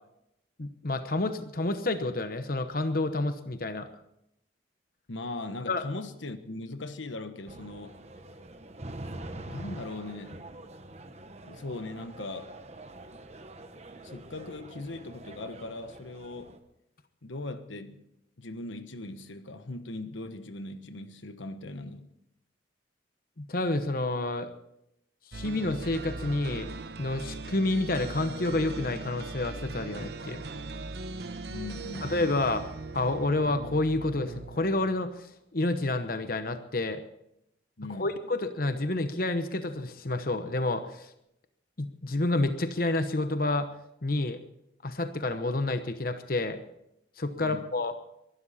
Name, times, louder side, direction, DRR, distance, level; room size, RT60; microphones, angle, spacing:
voice 1, 0.6-3.9 5.7-5.8 23.4-24.5 25.3-26.7 27.0-30.4 32.1-32.6 32.9-37.0 37.9-41.1 41.8-43.7 44.0-44.4 44.8-46.6 47.2-47.9, left 2 dB, 50° left, 1.0 m, -29 dB
voice 2, 5.1-8.0 9.5-10.4 11.5-12.5 14.0-16.5 17.2-18.0 18.4-22.1 31.5-32.4 37.8-38.1 47.4-47.7, left 2 dB, 85° left, 1.2 m, -39 dB
sound 1, 7.5-16.6, right 1 dB, 35° right, 1.1 m, -45 dB
sound 2, 25.3-35.1, right 3 dB, 55° right, 0.9 m, -40 dB
23.5 x 12.5 x 4.2 m
head